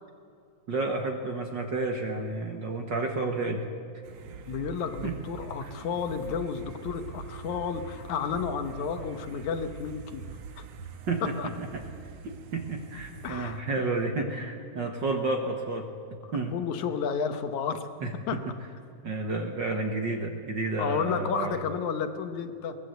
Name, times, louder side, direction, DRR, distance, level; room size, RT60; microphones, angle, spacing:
voice 1, 0.7-3.7 5.0-5.2 5.6-5.7 11.1-11.8 12.2-15.9 16.3-16.5 18.0-18.5 19.0-21.6, right 3 dB, 45° right, 4 dB, 1.7 m, -31 dB
sound 1, 4.0-13.6, right 6 dB, 60° right, 2.0 m, -43 dB
voice 2, 4.5-10.2 11.2-11.5 13.2-13.9 16.5-17.9 18.3-18.4 19.4-19.5 20.8-22.8, left 6 dB, 75° left, 8 dB, 2.5 m, -32 dB
22.0 x 19.5 x 8.0 m, 2.4 s
omnidirectional pair, 3.5 m